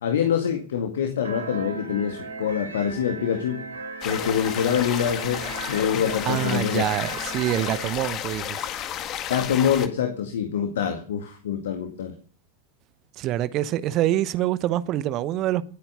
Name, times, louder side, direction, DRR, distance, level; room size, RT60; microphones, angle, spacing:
voice 1, 0.0-3.6 4.0-6.8 9.3-12.1, left 8 dB, 60° left, 1.9 m, -25 dB
sound 1, 1.2-7.9, right 4 dB, 75° right, 3.2 m, -37 dB
sound 2, 4.0-9.9, left 10 dB, 35° left, 1.8 m, -32 dB
voice 2, 6.2-8.7 13.2-15.6, right 13 dB, 35° right, 1.0 m, -25 dB
19.5 x 8.9 x 6.7 m
figure-of-eight pair, 90°, 0 cm